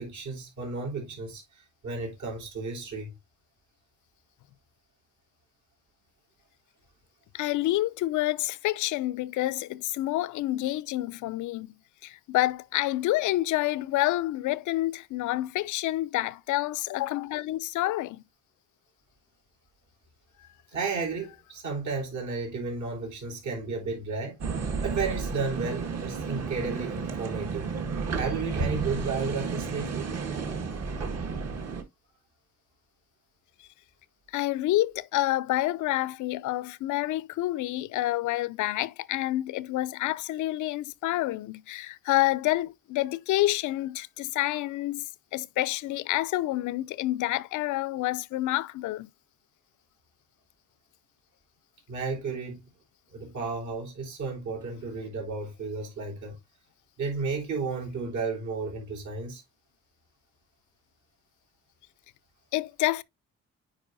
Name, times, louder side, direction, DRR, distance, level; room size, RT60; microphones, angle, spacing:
voice 1, 0.0-3.1 20.7-24.5 24.8-27.7 28.1-30.1 51.9-52.7 53.1-56.3 57.0-59.4, right 4 dB, 75° right, 3.7 m, -33 dB
voice 2, 7.3-11.7 12.0-18.2 33.6-33.7 34.3-45.0 45.3-49.1 62.5-63.0, left 16 dB, 75° left, 0.5 m, -28 dB
sound 1, 24.4-31.8, right 5 dB, 55° right, 1.6 m, -32 dB
8.9 x 4.8 x 2.5 m
cardioid pair, 90°, 30 cm